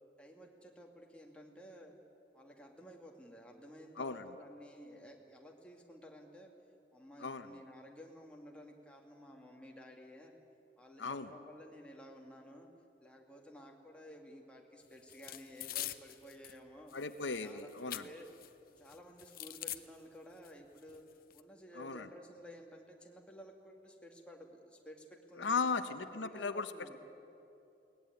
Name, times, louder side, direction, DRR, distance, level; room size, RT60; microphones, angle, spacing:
voice 1, 0.2-1.9 2.3-6.5 6.9-10.3 10.8-12.7 13.0-17.0 17.4-18.3 18.8-21.0 21.3-25.7 26.1-27.0, equal, 5° left, 0 dB, 2.2 m, -54 dB
voice 2, 11.0-11.3 16.9-18.1 21.8-22.1 25.4-26.7, left 4 dB, 80° left, 10 dB, 0.9 m, -36 dB
sound 1, 15.1-16.6 16.9-18.5 18.8-19.8 20.4-20.5 20.8-21.4, left 13 dB, 50° left, 0.8 m, -44 dB
22.0 x 18.0 x 9.5 m, 2.8 s
head